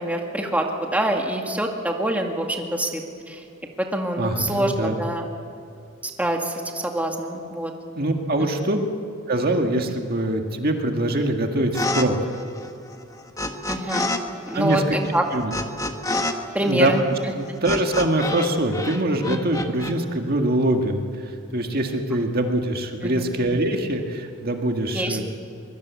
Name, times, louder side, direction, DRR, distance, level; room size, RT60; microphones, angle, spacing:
voice 1, 0.0-3.0 3.3-3.4 3.8-5.3 6.2-7.7 8.4-8.5 13.7-14.1 14.5-15.2 16.5-17.0 23.0-23.3 24.9-25.2, right 1 dB, 10° right, 2 dB, 2.1 m, -25 dB
voice 2, 4.2-5.0 8.0-8.8 9.3-12.3 14.5-15.0 15.3-15.5 16.6-16.9 17.4-25.2, right 1 dB, 50° right, 3 dB, 1.9 m, -23 dB
sound 1, 11.7-12.1 12.3-14.2 14.5-18.5 18.7-19.9, left 2 dB, 15° left, 1.5 m, -28 dB
23.5 x 23.0 x 8.4 m, 2.5 s
head